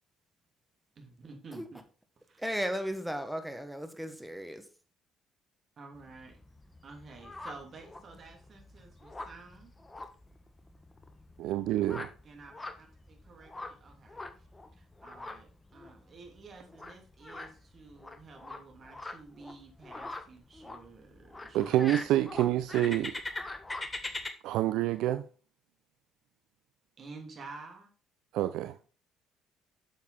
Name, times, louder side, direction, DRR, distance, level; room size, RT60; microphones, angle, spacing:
voice 1, 0.9-1.8 2.3-2.4 5.8-6.4 6.8-9.7 12.2-14.5 14.7-21.8 22.4-22.5 27.0-27.9, right 3 dB, 45° right, 2.9 m, -51 dB
voice 2, 2.4-4.7, equal, 5° right, 1.6 m, -35 dB
sound 1, 5.9-24.3, left 2 dB, 20° left, 1.5 m, -44 dB
voice 3, 11.4-12.1 21.5-23.2 24.4-25.2 28.3-28.8, right 13 dB, 70° right, 0.4 m, -27 dB
8.7 x 7.1 x 4.1 m
hypercardioid pair, 50°, 0 cm